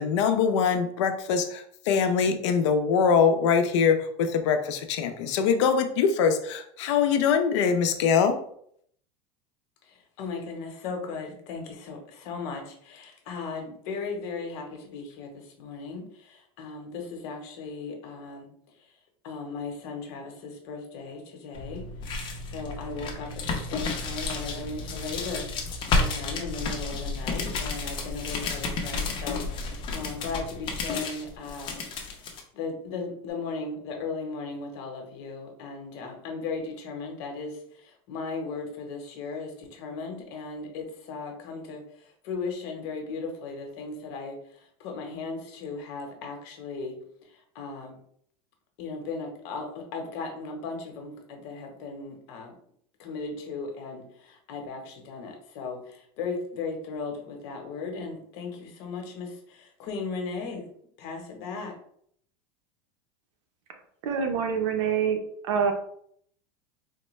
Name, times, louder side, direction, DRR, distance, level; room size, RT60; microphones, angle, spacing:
voice 1, 0.0-8.4, left 6 dB, 85° left, 6 dB, 0.6 m, -23 dB
voice 2, 9.8-18.5 18.8-18.9 19.2-21.9 22.1-31.8 32.1-48.0 48.8-52.6 53.0-60.7 61.0-61.7, left 4 dB, 60° left, 3 dB, 1.0 m, -37 dB
sound 1, 21.5-32.4, left 3 dB, 35° left, 0.7 m, -31 dB
voice 3, 64.0-65.2 65.5-65.7, right 7 dB, 85° right, 5 dB, 0.7 m, -25 dB
4.3 x 2.1 x 3.1 m, 0.66 s
supercardioid pair, 150°, 15 cm